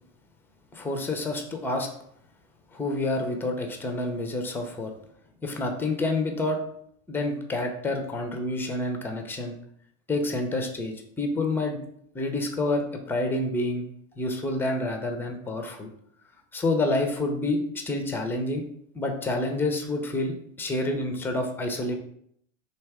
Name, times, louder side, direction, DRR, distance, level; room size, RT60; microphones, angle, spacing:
voice 1, 0.7-1.9 2.7-4.9 5.4-6.6 7.1-9.5 10.1-11.8 12.1-13.8 14.2-15.9 16.5-17.6 17.8-18.6 18.9-21.9, left 2 dB, 5° left, 5 dB, 0.4 m, -28 dB
3.4 x 2.8 x 4.6 m, 0.68 s
hypercardioid pair, 105°, 41 cm